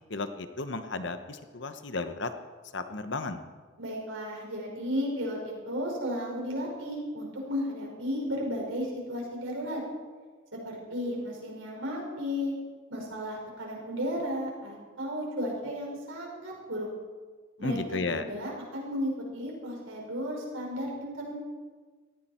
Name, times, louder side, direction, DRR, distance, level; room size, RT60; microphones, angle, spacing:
voice 1, 0.1-2.3 2.7-3.4 17.6-18.2, left 3 dB, 60° left, 9 dB, 1.0 m, -33 dB
voice 2, 3.8-9.8 10.6-12.5 12.9-16.9 17.6-21.3, equal, 85° right, -2 dB, 5.4 m, -34 dB
18.5 x 14.5 x 4.4 m, 1.4 s
head